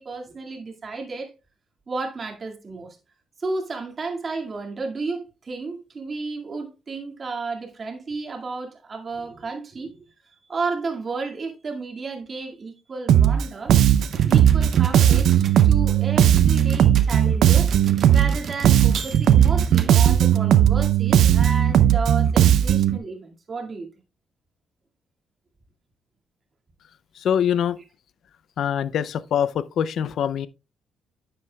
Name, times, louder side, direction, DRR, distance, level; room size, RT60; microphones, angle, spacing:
voice 1, 0.0-1.3 1.9-3.0 3.4-10.1 10.5-13.8 14.2-17.7 18.1-23.9, right 4 dB, 40° right, 2.1 m, -32 dB
Bass guitar, 13.1-13.4 13.7-18.4 18.6-23.0, right 10 dB, 75° right, 0.5 m, -17 dB
sound 1, 14.0-15.7 16.2-20.3, right 7 dB, 60° right, 1.0 m, -35 dB
voice 2, 27.2-27.8 28.6-30.5, left 9 dB, 70° left, 0.4 m, -24 dB
9.8 x 7.7 x 2.3 m
cardioid pair, 90°, 0 cm